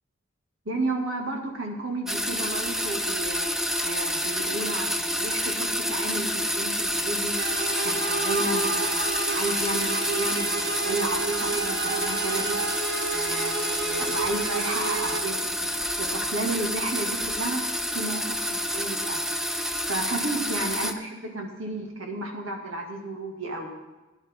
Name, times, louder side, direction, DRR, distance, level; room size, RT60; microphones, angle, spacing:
voice 1, 0.7-7.3 7.7-9.1 9.3-12.5 13.1-17.6 17.9-19.3 19.9-23.7, right 2 dB, 90° right, 1 dB, 2.3 m, -33 dB
sound 1, 2.1-20.9, equal, ahead, 0.4 m, -28 dB
sound 2, 7.4-15.2, right 4 dB, 55° right, 1.1 m, -31 dB
17.5 x 10.5 x 3.7 m, 1.1 s
head